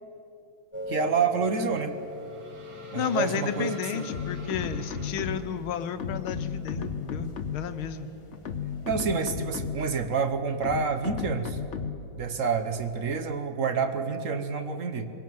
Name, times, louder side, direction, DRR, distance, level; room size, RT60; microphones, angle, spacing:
sound 1, 0.7-9.1, left 2 dB, 15° left, 1.5 m, -43 dB
voice 1, 0.9-2.0 2.9-4.1 8.8-11.6 12.2-15.1, right 5 dB, 45° right, 9 dB, 1.2 m, -28 dB
sound 2, 1.6-5.9, right 2 dB, 80° right, 3.5 m, -50 dB
voice 2, 2.9-8.1, left 8 dB, 85° left, 10 dB, 1.8 m, -32 dB
sound 3, 4.1-5.6 6.0-7.8 8.3-10.0 10.6-12.2, left 6 dB, 50° left, 0.9 m, -34 dB
22.0 x 17.0 x 7.8 m, 2.7 s
omnidirectional pair, 2.2 m